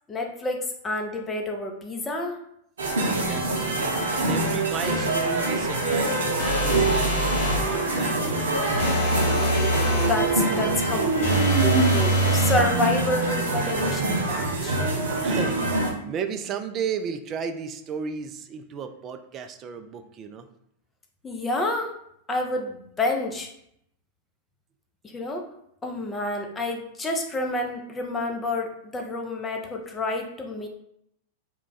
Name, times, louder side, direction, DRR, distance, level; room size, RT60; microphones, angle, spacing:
voice 1, 0.1-2.4 9.9-14.8 21.2-21.9 22.3-23.5 25.0-25.5 25.8-30.7, left 2 dB, 20° left, 2 dB, 0.5 m, -29 dB
sound 1, 2.8-15.9, right 2 dB, 80° right, 0.6 m, -25 dB
voice 2, 3.0-3.8 4.2-6.2 6.5-7.2 7.7-9.0 15.2-15.6 16.0-20.5, right 6 dB, 35° right, 8 dB, 0.3 m, -34 dB
sound 2, 6.4-7.7 8.8-10.2 11.2-12.7, right 1 dB, 60° left, 0.7 m, -24 dB
2.3 x 2.2 x 3.9 m, 0.73 s
hypercardioid pair, 95°, 0 cm